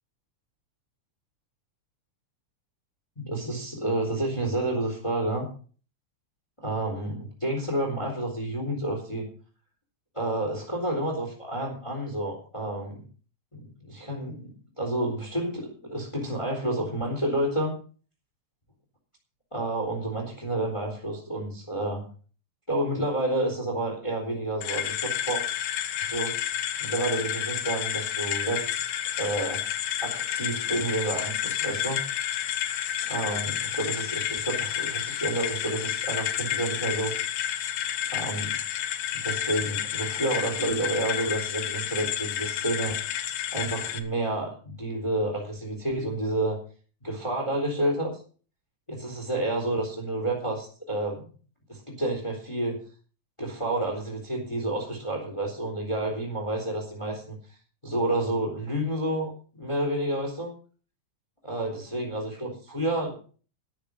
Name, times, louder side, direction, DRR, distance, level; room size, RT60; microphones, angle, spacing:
voice 1, 3.2-5.5 6.6-9.3 10.1-13.0 13.5-17.8 19.5-22.1 22.7-25.4 26.0-26.3 26.8-28.8 29.2-29.7 30.0-32.0 33.1-37.2 38.1-38.6 39.1-43.0 43.5-46.6 47.0-48.2 48.9-51.3 51.7-52.8 53.4-57.6 57.8-60.5 61.4-63.2, right 1 dB, 10° left, 1 dB, 3.7 m, -30 dB
sound 1, 24.6-44.0, left 11 dB, 85° left, 2.7 m, -30 dB
13.5 x 11.0 x 5.5 m, 0.41 s
omnidirectional pair, 3.5 m